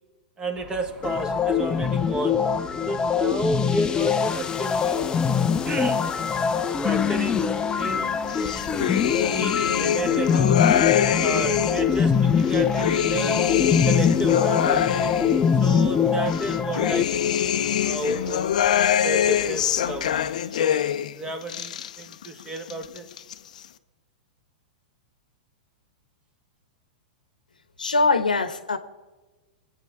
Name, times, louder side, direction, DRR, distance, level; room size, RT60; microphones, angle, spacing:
voice 1, 0.4-2.5 2.9-5.1 5.6-8.1 9.3-10.8 11.2-13.5 13.9-14.9 15.6-18.5 19.0-20.2 20.6-23.1, right 1 dB, 20° right, 1.9 m, -32 dB
sound 1, 0.5-20.3, equal, 35° right, 2.8 m, -44 dB
sound 2, 1.0-17.0, left 7 dB, 20° left, 0.7 m, -23 dB
sound 3, 8.3-11.9 12.4-15.8 16.3-21.1 21.4-22.3 22.6-23.3, left 10 dB, 65° left, 0.8 m, -24 dB
voice 2, 27.8-28.8, left 3 dB, 85° left, 1.2 m, -22 dB
24.5 x 9.0 x 4.7 m
figure-of-eight pair, 105°, 4 cm